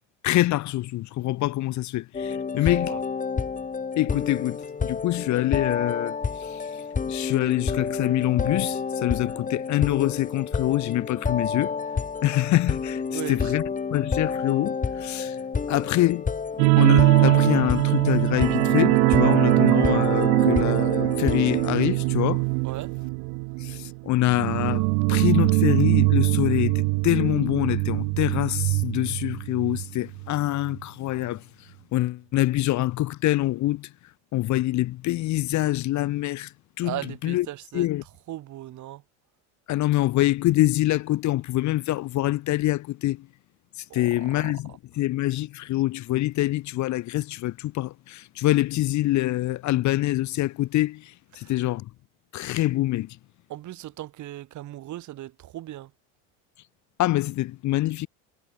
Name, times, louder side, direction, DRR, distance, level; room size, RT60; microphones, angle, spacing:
voice 1, 0.2-2.9 4.0-11.8 12.2-13.6 13.9-15.4 15.7-16.3 16.8-22.5 23.6-33.9 34.3-37.5 37.7-38.0 39.7-43.3 43.8-51.9 52.3-53.2 57.0-58.1, left 16 dB, 50° left, 1.3 m, -25 dB
sound 1, 2.1-21.9, left 5 dB, 20° left, 3.6 m, -29 dB
voice 2, 13.1-13.5 22.6-22.9 36.8-37.9 38.3-39.0 43.9-44.5 51.4-51.5 53.5-55.9, right 14 dB, 50° right, 4.2 m, -37 dB
sound 2, 16.6-29.8 30.1-30.3 30.7-30.8, right 37 dB, 70° right, 2.7 m, -22 dB
supercardioid pair, 115°, 38 cm